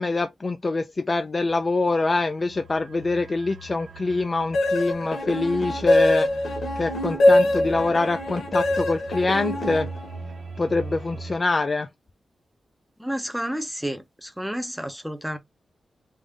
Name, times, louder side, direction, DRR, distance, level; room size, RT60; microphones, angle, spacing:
voice 1, 0.0-6.3 6.8-9.9 10.6-11.9, left 3 dB, 30° left, 0.4 m, -25 dB
sound 1, 1.5-11.3, right 3 dB, 70° right, 0.7 m, -40 dB
sound 2, 4.5-10.4, left 1 dB, 75° left, 1.4 m, -23 dB
voice 2, 13.0-15.4, equal, 5° right, 0.7 m, -30 dB
3.6 x 2.6 x 3.4 m
wide cardioid pair, 125°, 0 cm